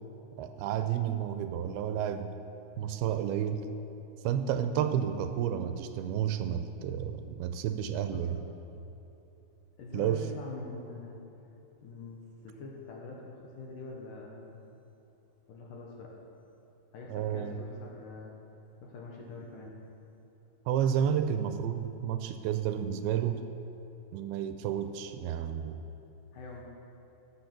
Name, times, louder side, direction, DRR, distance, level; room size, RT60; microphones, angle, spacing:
voice 1, 0.4-2.3 2.8-3.6 4.2-8.4 9.9-10.3 17.1-17.6 20.7-23.4 24.1-25.8, right 9 dB, 85° right, 8 dB, 2.4 m, -31 dB
voice 2, 7.9-8.4 9.8-11.2 11.8-14.5 15.5-16.2 16.9-18.3 18.8-19.8 26.3-26.6, left 3 dB, 70° left, -1 dB, 2.3 m, -44 dB
14.0 x 7.3 x 5.9 m, 2.9 s
omnidirectional pair, 4.6 m